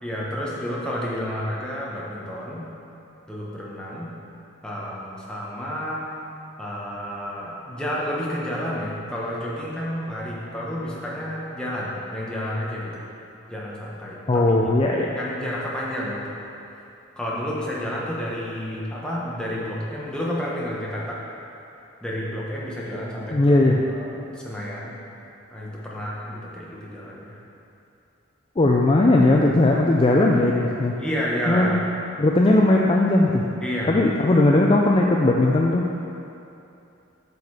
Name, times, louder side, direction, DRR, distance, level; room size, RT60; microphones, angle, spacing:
voice 1, 0.0-2.6 3.3-4.1 4.6-6.0 6.6-13.0 13.5-14.4 15.1-16.4 17.2-21.2 22.0-23.6 23.9-24.9 25.5-27.4 31.0-31.9 33.6-34.0, equal, 5° left, -6 dB, 1.1 m, -30 dB
voice 2, 14.3-15.1 23.3-23.8 28.6-30.9 31.5-31.8 32.2-33.4 33.9-35.9, left 2 dB, 25° left, -1 dB, 0.4 m, -18 dB
6.9 x 6.7 x 4.8 m, 2.7 s
head